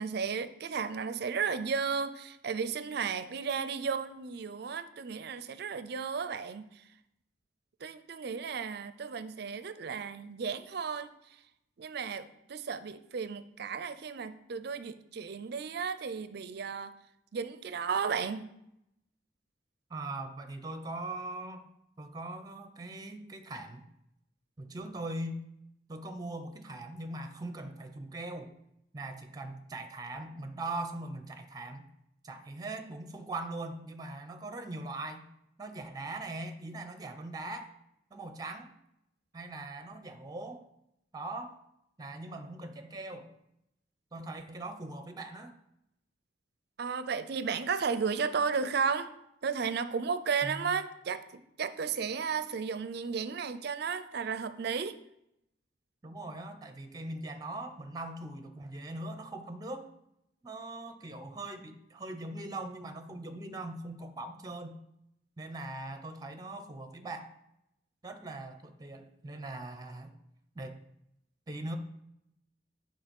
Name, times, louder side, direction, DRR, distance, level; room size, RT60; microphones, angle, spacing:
voice 1, 0.0-6.7 7.8-11.1 11.8-16.9 17.3-18.5 46.8-49.1 49.4-54.9, right 6 dB, 60° right, 12 dB, 0.5 m, -34 dB
voice 2, 19.9-21.6 22.0-23.9 24.6-25.4 25.9-28.5 28.9-31.9 32.2-35.3 35.6-37.7 38.1-38.7 39.3-40.6 41.1-41.6 42.0-43.3 44.1-45.5 50.4-50.8 56.0-59.9 60.4-64.8 65.4-67.3 68.0-70.2 70.5-70.8 71.5-71.8, right 2 dB, 20° right, 8 dB, 0.7 m, -41 dB
8.7 x 4.5 x 5.3 m, 0.81 s
head